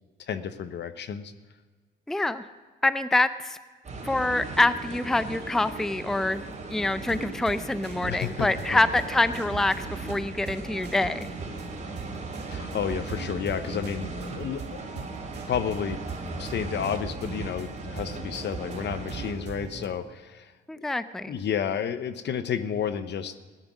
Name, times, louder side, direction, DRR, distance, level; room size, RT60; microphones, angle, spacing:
voice 1, 0.2-1.3 8.1-8.8 12.5-14.6 14.9-15.1 15.5-16.0 16.4-20.5 20.8-20.9 21.3-23.4, left 8 dB, 60° left, 12 dB, 1.0 m, -31 dB
voice 2, 2.1-2.4 2.8-3.6 4.0-6.4 6.7-11.3 20.7-21.4, left 2 dB, ahead, 13 dB, 0.5 m, -25 dB
sound 1, 3.8-19.3, right 2 dB, 35° right, 3.0 m, -38 dB
sound 2, 5.2-19.9, right 6 dB, 60° right, 1.8 m, -42 dB
16.5 x 11.5 x 6.2 m, 1.4 s
cardioid pair, 90°, 20 cm